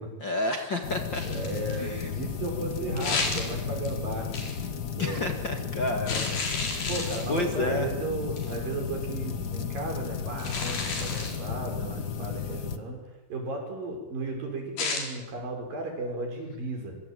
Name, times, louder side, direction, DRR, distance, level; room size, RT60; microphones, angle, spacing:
voice 1, 0.2-1.2 1.8-2.1 5.0-7.0 7.3-7.9, left 2 dB, 40° left, 4 dB, 2.1 m, -30 dB
sound 1, 0.8-12.8, left 7 dB, 60° left, 1.0 m, -34 dB
sound 2, 1.1-1.8 3.0-3.9 4.3-4.7 6.1-7.5 8.4-8.6 10.4-11.4 14.8-15.1, left 4 dB, 75° left, 6.2 m, -32 dB
voice 2, 1.2-4.3 5.0-5.3 6.9-13.0 13.3-17.0, right 2 dB, 70° right, 2 dB, 7.5 m, -35 dB
25.5 x 25.0 x 9.1 m, 1.1 s
omnidirectional pair, 4.2 m